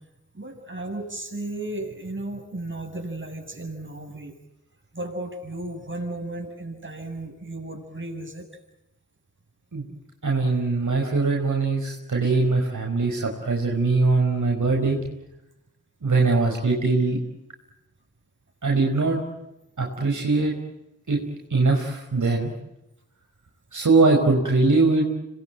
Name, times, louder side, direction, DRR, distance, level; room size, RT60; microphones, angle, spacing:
voice 1, 0.3-4.3 4.9-8.5, right 2 dB, 35° right, 3 dB, 7.7 m, -34 dB
voice 2, 10.2-15.0 16.0-17.2 18.6-19.2 19.8-20.5 21.1-21.2 21.5-22.5 23.7-25.1, right 3 dB, 65° right, 0 dB, 5.1 m, -21 dB
26.5 x 21.0 x 9.1 m, 0.90 s
cardioid pair, 40°, 32 cm